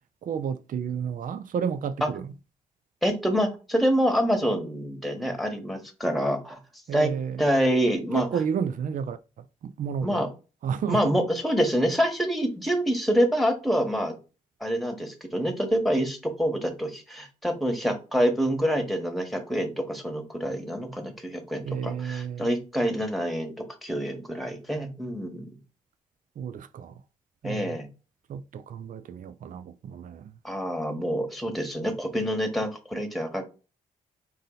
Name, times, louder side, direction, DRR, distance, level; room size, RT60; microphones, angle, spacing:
voice 1, 0.2-2.3 6.9-7.4 8.1-10.3 10.6-11.1 21.6-22.5 26.4-27.0 27.4-27.8 28.3-30.3, right 7 dB, 55° right, 0.4 m, -31 dB
voice 2, 3.0-6.6 6.9-7.1 7.4-8.3 10.0-10.3 10.9-14.1 14.6-23.5 23.8-25.5 27.4-27.9 30.4-33.4, equal, ahead, 1.6 m, -26 dB
3.7 x 2.7 x 4.0 m
hypercardioid pair, 40°, 16 cm